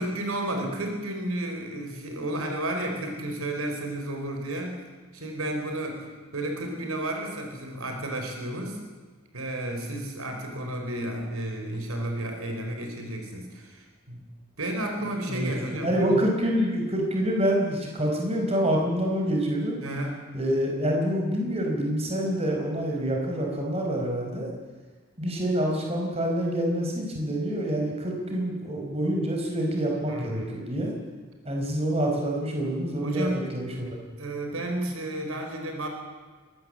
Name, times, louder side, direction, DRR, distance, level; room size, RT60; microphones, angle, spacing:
voice 1, 0.0-4.8 5.1-6.1 6.3-8.8 9.3-14.2 14.6-16.2 19.8-20.2 30.1-30.6 33.0-33.4 34.2-35.9, right 1 dB, 80° right, 3 dB, 4.5 m, -32 dB
voice 2, 15.3-19.8 20.3-24.5 25.2-30.9 31.4-34.1, equal, 30° right, 0 dB, 4.7 m, -27 dB
21.5 x 18.0 x 7.7 m, 1.4 s
head